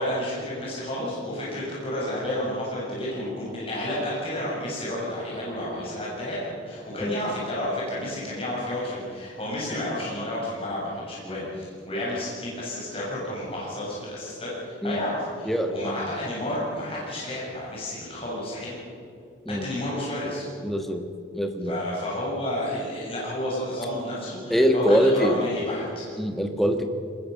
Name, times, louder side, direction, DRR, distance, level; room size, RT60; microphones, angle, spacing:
voice 1, 0.0-18.8 19.5-20.5 21.7-26.1, left 1 dB, 30° left, -6 dB, 7.0 m, -31 dB
voice 2, 15.4-15.9 19.4-19.7 20.6-21.1 21.3-21.8 24.5-25.4 26.2-26.9, equal, ahead, 5 dB, 1.5 m, -23 dB
21.5 x 20.5 x 6.6 m, 2.3 s
head